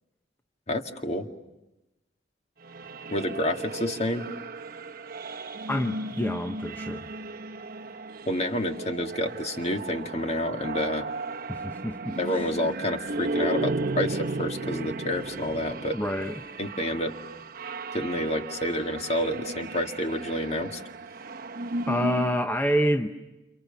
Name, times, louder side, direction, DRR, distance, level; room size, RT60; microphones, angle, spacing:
voice 1, 0.7-1.3 3.1-4.2 8.3-11.1 12.2-16.0 16.6-17.1 17.9-20.8, left 1 dB, 35° left, 2.0 m, -29 dB
sound 1, 2.6-22.5, right 2 dB, 55° right, 1.0 m, -35 dB
voice 2, 5.7-7.1 11.5-12.4 15.9-16.4 21.9-23.1, equal, 10° left, 0.9 m, -27 dB
29.5 x 29.0 x 6.9 m
head